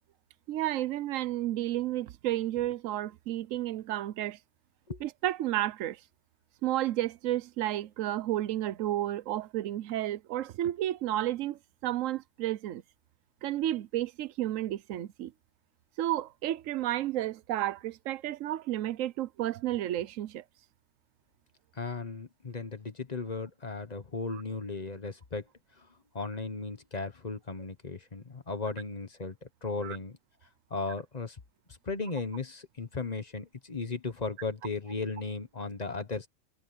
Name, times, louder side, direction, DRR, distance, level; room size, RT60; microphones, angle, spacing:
voice 1, 0.5-4.4 5.0-6.0 6.6-12.8 13.4-15.3 16.0-20.4 24.3-24.4 29.8-30.0, right 13 dB, 85° right, 1.0 m, -32 dB
voice 2, 21.8-25.4 26.1-29.4 29.6-30.2 30.7-31.4 31.8-36.3, left 4 dB, 35° left, 1.3 m, -36 dB
omnidirectional pair, 1.3 m